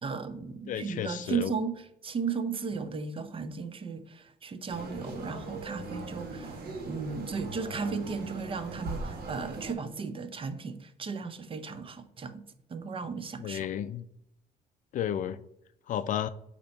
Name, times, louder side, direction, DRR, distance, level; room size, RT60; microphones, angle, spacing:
voice 1, 0.0-12.4 12.7-13.7, right 5 dB, 30° right, 0.6 m, -35 dB
voice 2, 0.7-1.5 13.4-14.0 14.9-15.4 15.9-16.3, left 10 dB, 50° left, 0.4 m, -32 dB
sound 1, 4.7-9.7, right 2 dB, 65° right, 1.6 m, -40 dB
8.4 x 2.9 x 5.2 m
cardioid pair, 110°, 17 cm